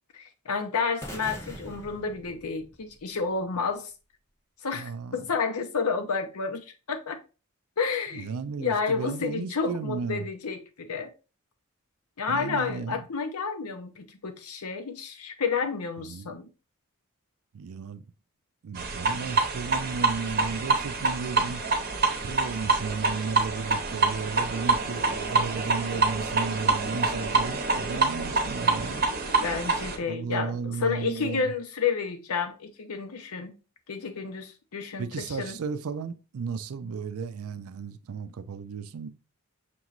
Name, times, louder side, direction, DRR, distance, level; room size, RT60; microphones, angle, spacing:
voice 1, 0.1-3.9 4.6-7.2 7.8-8.3 8.6-11.1 12.2-16.5 28.9-29.0 29.4-33.5 33.9-35.6, left 5 dB, 85° left, 0.7 m, -30 dB
sound 1, 1.0-3.1, equal, 10° left, 0.7 m, -42 dB
voice 2, 4.7-5.3 8.1-10.3 12.3-13.0 16.0-16.3 17.5-18.1 18.6-21.6 22.2-29.1 30.0-31.5 35.0-39.1, right 5 dB, 75° right, 0.4 m, -34 dB
sound 2, 18.8-30.0, right 3 dB, 45° right, 0.7 m, -26 dB
6.0 x 3.0 x 2.4 m
head